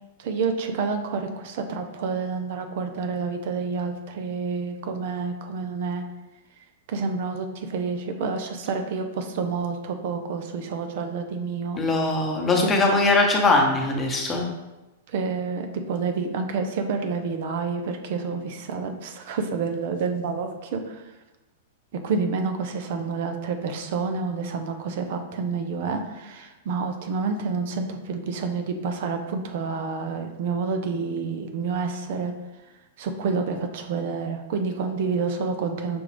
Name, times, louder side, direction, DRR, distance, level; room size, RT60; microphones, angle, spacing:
voice 1, 0.2-6.0 6.9-11.8 12.6-12.7 15.1-21.0 21.9-32.3 33.0-36.0, right 4 dB, 55° right, 5 dB, 0.5 m, -28 dB
voice 2, 11.8-14.4, left 2 dB, 20° left, 0 dB, 0.9 m, -21 dB
6.0 x 2.4 x 3.3 m, 1.1 s
hypercardioid pair, 105°, 0 cm